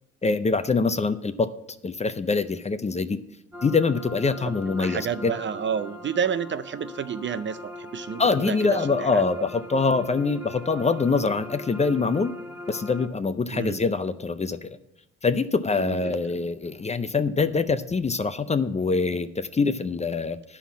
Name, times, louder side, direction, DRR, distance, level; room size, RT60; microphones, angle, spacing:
voice 1, 0.2-1.5 1.8-3.2 3.6-5.3 8.2-12.3 12.7-14.8 15.2-20.4, left 4 dB, 25° left, 0.5 m, -24 dB
sound 1, 3.5-13.1, left 1 dB, 5° right, 1.2 m, -40 dB
voice 2, 4.7-9.5 13.5-13.8 15.8-16.2, right 7 dB, 40° right, 0.5 m, -30 dB
10.0 x 5.7 x 7.1 m
cardioid pair, 90°, 30 cm